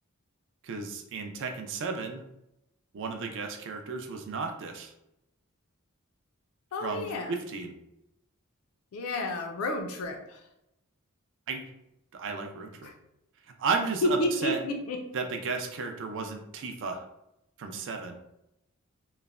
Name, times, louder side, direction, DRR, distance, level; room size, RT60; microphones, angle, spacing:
voice 1, 0.6-2.2 2.9-4.9 6.8-7.7 11.5-11.7 12.1-12.9 13.6-14.6 15.1-17.0 17.6-18.2, right 4 dB, 60° right, 4 dB, 0.4 m, -33 dB
voice 2, 6.7-7.3 8.9-10.4 12.8-12.9 14.0-15.0, left 1 dB, 70° left, 3 dB, 0.4 m, -30 dB
3.0 x 2.0 x 2.4 m, 0.84 s
head